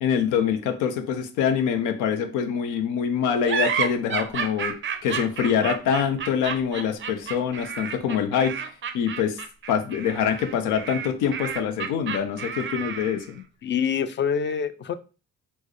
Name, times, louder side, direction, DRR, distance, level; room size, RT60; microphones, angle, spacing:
voice 1, 0.0-4.7 5.0-8.6 8.9-9.4 9.7-13.4, left 7 dB, 90° left, 9 dB, 0.6 m, -25 dB
sound 1, 3.5-13.3, right 6 dB, 40° right, 0.5 m, -31 dB
voice 2, 13.6-15.0, left 7 dB, 40° left, 12 dB, 0.4 m, -25 dB
4.4 x 2.1 x 3.0 m, 0.33 s
cardioid pair, 90°, 30 cm